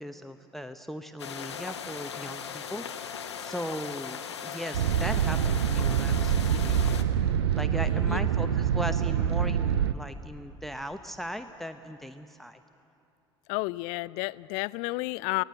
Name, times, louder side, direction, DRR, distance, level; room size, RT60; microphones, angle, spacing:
voice 1, 0.0-7.0 7.5-12.6, equal, ahead, 9 dB, 0.8 m, -38 dB
sound 1, 1.2-7.0, left 7 dB, 80° left, 1.0 m, -38 dB
sound 2, 4.7-9.9, right 9 dB, 70° right, 0.5 m, -25 dB
voice 2, 13.5-15.4, left 23 dB, 55° left, 20 dB, 0.4 m, -31 dB
24.0 x 17.0 x 7.9 m, 2.8 s
figure-of-eight pair, 65°, 14 cm